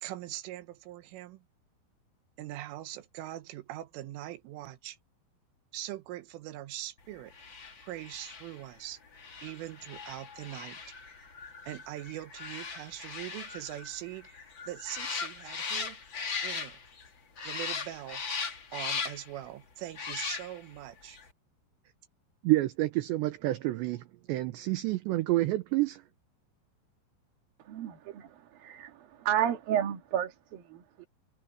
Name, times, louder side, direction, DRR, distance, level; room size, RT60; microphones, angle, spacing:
voice 1, 0.0-1.4 2.4-5.0 5.7-7.3 7.8-9.0 9.4-10.8 11.7-16.0 16.4-16.8 17.4-18.2 18.7-21.2, right 14 dB, 90° right, 3.8 m, -42 dB
sound 1, 7.3-17.1 17.4-19.4 19.9-20.8 21.1-21.2, left 5 dB, 40° left, 1.8 m, -39 dB
voice 2, 22.4-26.0, right 18 dB, 75° right, 3.0 m, -28 dB
voice 3, 27.6-31.1, right 10 dB, 55° right, 3.7 m, -32 dB
omnidirectional pair, 5.5 m